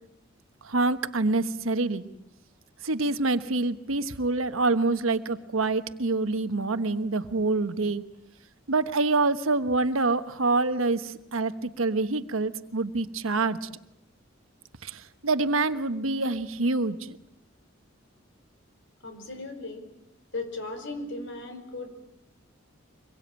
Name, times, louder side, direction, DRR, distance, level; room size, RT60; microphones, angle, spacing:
voice 1, 0.6-2.0 2.8-8.0 8.7-13.7 14.8-17.2, right 3 dB, 90° right, 10 dB, 1.2 m, -26 dB
voice 2, 19.0-19.9 20.3-21.9, left 2 dB, 60° left, 6 dB, 5.6 m, -36 dB
25.0 x 22.5 x 8.9 m, 0.81 s
head